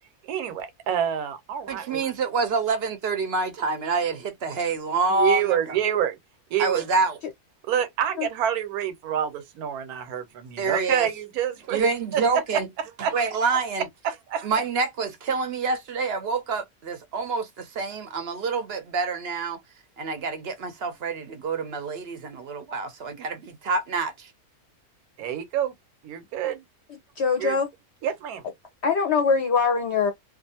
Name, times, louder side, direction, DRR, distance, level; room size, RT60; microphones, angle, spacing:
voice 1, 0.2-2.0 5.1-6.2 6.5-6.9 7.7-11.8 12.1-13.1 14.0-14.5 25.2-25.7 26.0-26.6 27.4-27.6 28.0-28.4, right 9 dB, 90° right, 1.1 m, -27 dB
voice 2, 1.7-5.6 6.6-7.2 10.6-11.1 11.7-12.7 13.1-13.8 14.4-19.6 20.0-24.3, right 4 dB, 60° right, 0.7 m, -27 dB
voice 3, 27.2-27.7 28.8-30.1, left 5 dB, 60° left, 0.8 m, -22 dB
2.5 x 2.4 x 2.6 m
omnidirectional pair, 1.5 m